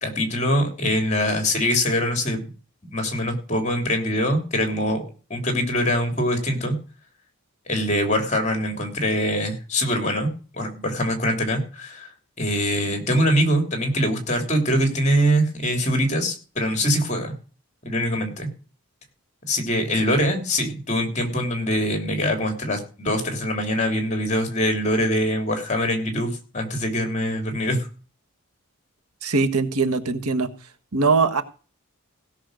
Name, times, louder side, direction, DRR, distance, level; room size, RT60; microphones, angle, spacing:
voice 1, 0.0-2.5 2.9-5.0 5.3-6.8 7.7-12.1 12.4-17.3 17.8-18.5 19.5-27.9, equal, 30° left, 5 dB, 3.1 m, -23 dB
voice 2, 29.2-30.5 30.9-31.4, right 4 dB, 90° right, 7 dB, 1.4 m, -21 dB
16.5 x 6.3 x 6.4 m, 0.37 s
head